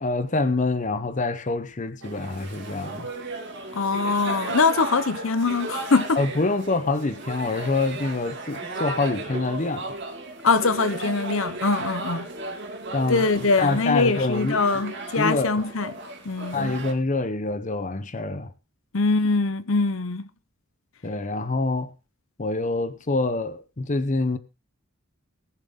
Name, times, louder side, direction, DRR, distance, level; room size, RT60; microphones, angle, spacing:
voice 1, 0.0-3.1 6.2-9.9 12.9-14.8 15.2-15.6 16.5-18.5 21.0-21.9 22.4-24.4, left 3 dB, 35° left, 0.7 m, -26 dB
sound 1, 2.0-16.9, right 2 dB, 50° right, 2.3 m, -35 dB
voice 2, 3.7-6.2 10.4-12.3 13.1-15.9 16.2-16.7 18.9-20.3, left 4 dB, 60° left, 0.8 m, -23 dB
19.5 x 7.4 x 3.6 m
head